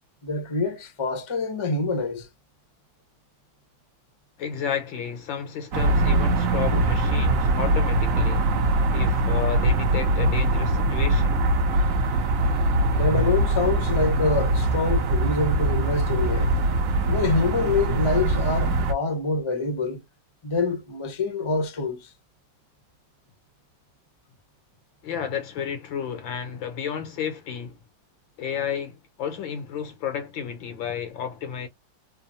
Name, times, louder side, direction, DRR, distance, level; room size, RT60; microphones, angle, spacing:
voice 1, 0.2-2.3 6.7-6.8 12.9-16.5 17.1-20.0 20.4-22.1, left 3 dB, 30° left, 0.5 m, -26 dB
voice 2, 4.4-11.4 25.0-27.8 28.4-31.7, left 7 dB, 85° left, 1.7 m, -32 dB
sound 1, 5.7-18.9, right 2 dB, 60° right, 0.9 m, -22 dB
3.6 x 2.0 x 2.6 m
omnidirectional pair, 2.1 m